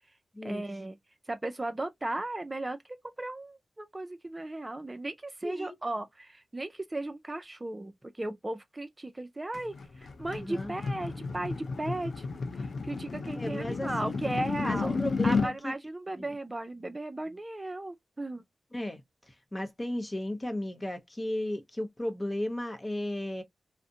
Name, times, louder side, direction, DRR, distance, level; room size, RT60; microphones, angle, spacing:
voice 1, 0.4-1.0 1.3-2.8 3.0-12.2 12.6-18.4, right 2 dB, 25° right, 0.4 m, -36 dB
voice 2, 5.4-5.8 10.4-10.7 13.4-14.1 14.6-15.7 16.2-16.3 18.7-19.0 19.5-23.4, left 1 dB, 25° left, 0.7 m, -35 dB
sound 1, 9.5-15.5, left 4 dB, 65° left, 0.4 m, -32 dB
2.5 x 2.1 x 2.5 m
cardioid pair, 50°, 0 cm